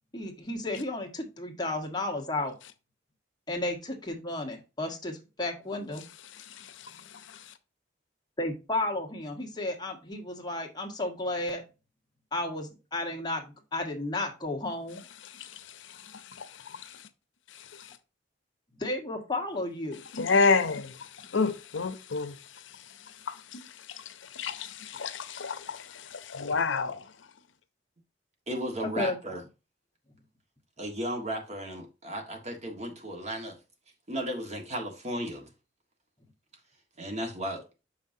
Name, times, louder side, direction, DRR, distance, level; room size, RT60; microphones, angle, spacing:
voice 1, 0.1-2.5 3.5-6.0 8.4-11.6 12.3-13.5 13.7-15.0 18.8-20.0 29.0-29.2, left 2 dB, 20° left, 1.3 m, -33 dB
voice 2, 6.6-6.9 15.3-15.5 16.4-16.9 20.1-22.3 23.3-23.7 24.0-24.1 24.3-27.0, left 4 dB, 75° left, 0.7 m, -29 dB
voice 3, 28.5-29.4 30.8-33.6 34.1-35.5 37.0-37.6, equal, 35° right, 1.5 m, -35 dB
6.1 x 5.7 x 2.7 m
head